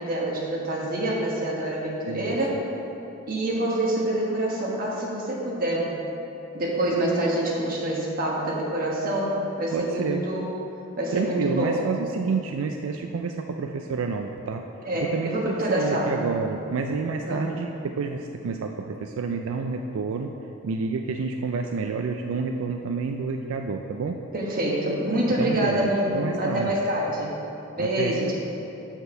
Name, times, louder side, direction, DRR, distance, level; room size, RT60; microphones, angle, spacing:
voice 1, 0.0-2.6 3.3-5.9 6.5-10.5 11.0-11.8 14.8-16.2 17.2-17.5 24.3-27.3 27.8-28.3, right 1 dB, 45° right, -3 dB, 1.3 m, -26 dB
voice 2, 2.1-2.4 9.7-10.2 11.1-14.6 15.0-20.3 20.6-24.2 25.4-25.9 26.1-26.7 27.8-28.3, right 4 dB, 85° right, 4 dB, 0.4 m, -29 dB
6.8 x 4.4 x 6.5 m, 3.0 s
head